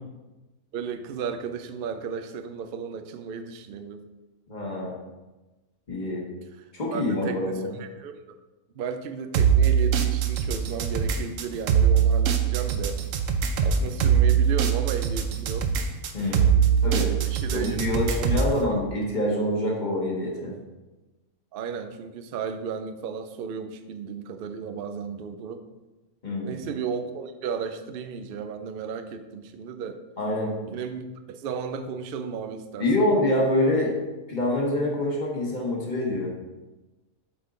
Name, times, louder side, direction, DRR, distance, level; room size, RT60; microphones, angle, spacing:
voice 1, 0.7-4.0 6.0-6.2 6.9-8.2 8.7-13.0 13.6-15.7 17.3-18.7 21.5-25.6 26.4-30.0 30.7-33.1, right 6 dB, 85° right, 8 dB, 0.5 m, -34 dB
voice 2, 4.5-4.9 5.9-6.2 6.7-7.7 16.1-16.5 16.8-17.1 17.5-20.5 26.2-26.6 30.2-30.5 32.8-33.9 34.3-36.3, left 1 dB, 35° left, -3 dB, 1.2 m, -26 dB
sound 1, 9.3-18.6, right 7 dB, 65° right, 0.9 m, -22 dB
7.7 x 3.6 x 3.8 m, 1.1 s
omnidirectional pair, 1.5 m